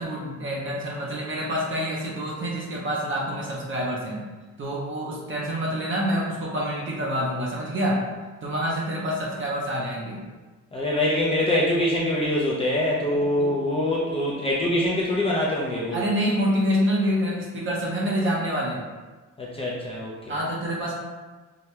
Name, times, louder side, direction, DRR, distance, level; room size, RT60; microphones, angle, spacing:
voice 1, 0.0-4.2 4.6-8.1 8.4-10.2 13.4-13.5 15.9-18.8 20.3-20.9, equal, 40° right, -4 dB, 0.8 m, -27 dB
voice 2, 10.7-16.1 19.4-20.4, left 1 dB, 20° left, -5 dB, 0.5 m, -24 dB
4.8 x 2.7 x 2.2 m, 1.3 s
cardioid pair, 105°, 32 cm